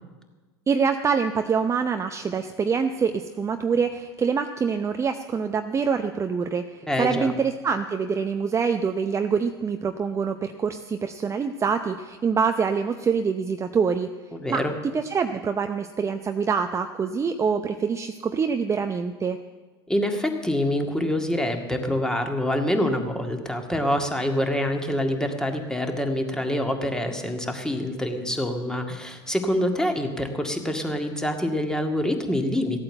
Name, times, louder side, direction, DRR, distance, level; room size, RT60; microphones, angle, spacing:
voice 1, 0.7-14.1 14.5-14.6 14.9-19.4, right 6 dB, 20° right, 7 dB, 0.7 m, -25 dB
voice 2, 6.9-7.3 14.3-14.7 19.9-32.8, left 1 dB, 5° left, 4 dB, 2.0 m, -26 dB
15.5 x 8.8 x 7.8 m, 1.3 s
hypercardioid pair, 100°, 14 cm